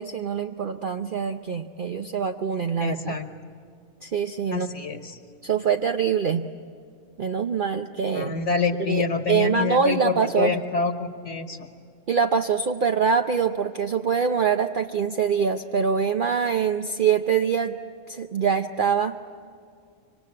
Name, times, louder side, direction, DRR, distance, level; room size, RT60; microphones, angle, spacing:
voice 1, 0.0-3.1 4.0-4.7 5.4-6.5 7.2-8.3 8.8-10.5 12.1-17.8 18.1-19.2, right 6 dB, 50° right, 6 dB, 0.8 m, -24 dB
voice 2, 2.8-3.3 4.5-5.2 8.1-11.7, left 5 dB, 65° left, 6 dB, 1.6 m, -27 dB
26.0 x 24.5 x 8.6 m, 2.4 s
omnidirectional pair, 1.3 m